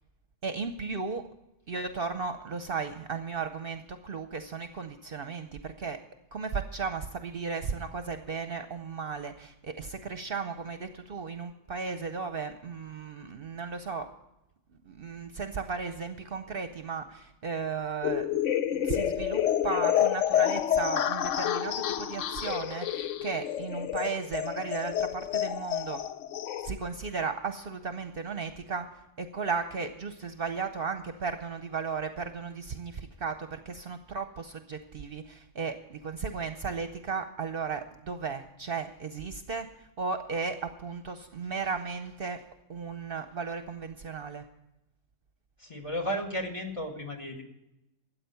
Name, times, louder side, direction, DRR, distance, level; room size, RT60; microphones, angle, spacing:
voice 1, 0.4-1.2 1.7-6.0 6.3-14.1 14.8-18.4 18.7-26.0 26.6-28.9 29.2-42.4 42.7-44.4, right 5 dB, 55° right, 8 dB, 0.9 m, -35 dB
sound 1, 18.0-26.7, left 11 dB, 80° left, 1.0 m, -29 dB
voice 2, 45.6-47.4, equal, 25° left, 2 dB, 1.9 m, -34 dB
13.5 x 8.6 x 6.8 m, 0.89 s
omnidirectional pair, 1.3 m